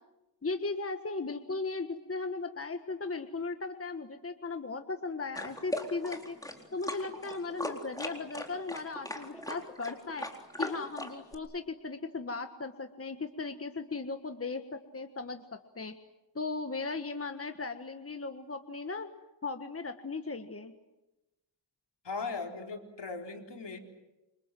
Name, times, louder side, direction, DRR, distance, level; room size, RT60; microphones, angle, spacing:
voice 1, 0.4-6.4 6.7-10.3 10.6-15.9 16.3-19.1 19.4-20.7, left 3 dB, 30° left, 6 dB, 1.6 m, -37 dB
sound 1, 5.4-11.4, left 1 dB, 10° left, 4.1 m, -38 dB
voice 2, 22.0-23.8, left 4 dB, 70° left, 2 dB, 4.2 m, -38 dB
28.0 x 26.0 x 7.7 m, 0.97 s
wide cardioid pair, 90°, 43 cm